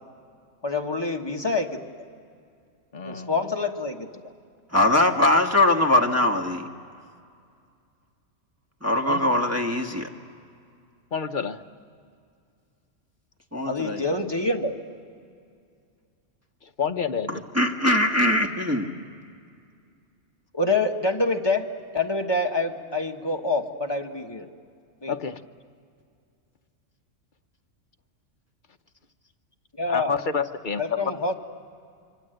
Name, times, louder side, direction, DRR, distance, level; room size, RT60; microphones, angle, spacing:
voice 1, 0.6-1.8 3.0-4.2 13.6-14.7 20.5-21.7 21.9-24.5 25.0-25.1 29.8-30.1 30.8-31.3, left 3 dB, 20° left, 2 dB, 1.4 m, -26 dB
voice 2, 2.9-3.4 9.1-9.2 11.1-11.6 16.6-17.4 25.1-25.4 29.9-31.0, left 6 dB, 45° left, 7 dB, 0.9 m, -29 dB
voice 3, 4.7-6.7 8.8-10.1 13.5-14.2 17.3-18.9, left 1 dB, 10° right, 1 dB, 1.3 m, -22 dB
26.0 x 24.5 x 7.9 m, 2.3 s
omnidirectional pair, 1.3 m